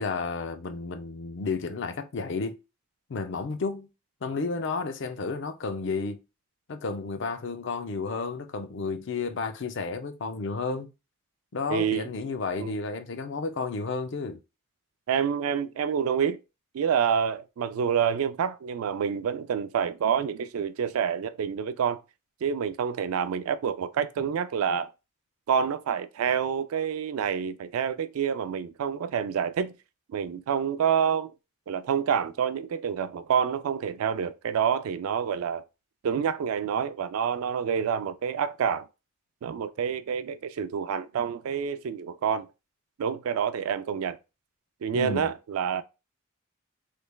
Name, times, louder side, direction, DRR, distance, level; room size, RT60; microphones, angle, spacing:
voice 1, 0.0-2.6 3.1-3.9 4.2-6.2 6.7-10.9 11.5-14.4 44.9-45.3, left 4 dB, 55° left, 0.4 m, -32 dB
voice 2, 11.7-12.1 12.6-12.7 15.1-16.4 16.7-22.0 22.4-24.9 25.5-29.8 30.1-31.3 31.7-35.6 36.0-38.9 39.4-42.5 43.0-44.2 44.8-45.8, right 7 dB, 90° right, 0.3 m, -27 dB
3.3 x 3.2 x 2.2 m
head